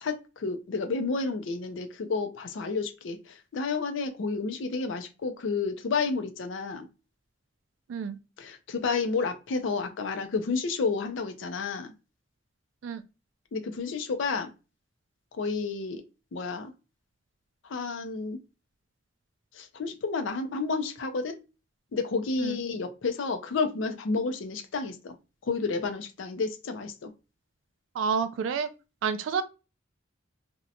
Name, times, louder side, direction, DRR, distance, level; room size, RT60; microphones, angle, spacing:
voice 1, 0.0-3.2 3.5-6.9 8.4-11.9 13.5-14.5 15.4-16.0 16.3-16.7 17.7-18.4 19.6-21.4 21.9-25.1 25.5-27.1, left 4 dB, 85° left, 0.5 m, -30 dB
voice 2, 27.9-28.7 29.0-29.4, right 6 dB, 90° right, 0.3 m, -29 dB
2.7 x 2.1 x 2.6 m
head